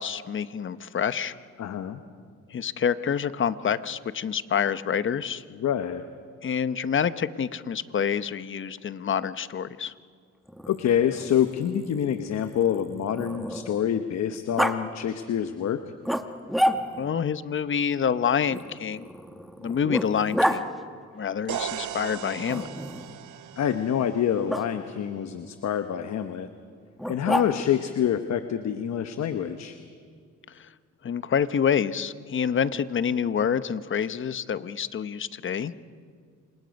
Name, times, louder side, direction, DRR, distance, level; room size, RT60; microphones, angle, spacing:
voice 1, 0.0-1.3 2.5-5.4 6.4-9.9 17.0-19.1 19.6-20.7 21.1-22.7 30.5-30.7 31.0-35.7, left 7 dB, 40° left, 14 dB, 0.9 m, -27 dB
voice 2, 1.6-2.0 5.6-6.0 10.7-15.8 23.6-26.5 27.1-29.8, left 9 dB, 60° left, 9 dB, 1.1 m, -26 dB
Growling, 10.5-13.9 14.6-14.8 16.0-17.1 18.5-20.6 22.5-23.2 24.5-24.6 27.0-27.8, equal, ahead, 1.4 m, -30 dB
sound 1, 21.5-25.3, right 10 dB, 75° right, 1.2 m, -38 dB
28.0 x 26.0 x 5.3 m, 2.1 s
cardioid pair, 90°, 30 cm